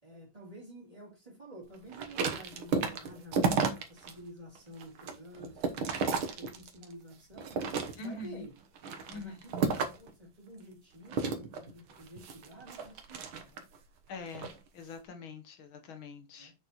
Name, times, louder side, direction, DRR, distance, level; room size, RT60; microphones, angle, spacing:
voice 1, 0.0-7.6 8.0-8.5 9.1-13.6 16.4-16.5, right 1 dB, 15° right, 4.0 m, -50 dB
sound 1, 1.9-4.1 4.6-6.9 7.4-8.3 8.8-10.1 11.1-13.8 14.3-14.6, right 5 dB, 85° right, 1.9 m, -32 dB
voice 2, 8.0-8.5 9.1-9.4 14.1-16.5, left 3 dB, 80° left, 2.0 m, -44 dB
7.2 x 6.5 x 3.0 m
omnidirectional pair, 2.2 m